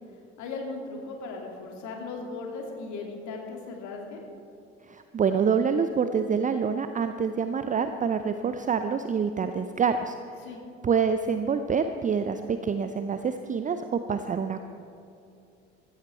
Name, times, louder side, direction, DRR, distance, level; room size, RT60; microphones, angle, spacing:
voice 1, 0.4-4.2 10.4-10.6, left 3 dB, 55° left, 1 dB, 2.7 m, -37 dB
voice 2, 4.9-10.2 10.8-14.6, right 6 dB, 20° right, 9 dB, 0.6 m, -26 dB
15.0 x 14.5 x 4.4 m, 2.6 s
figure-of-eight pair, 55°, 36 cm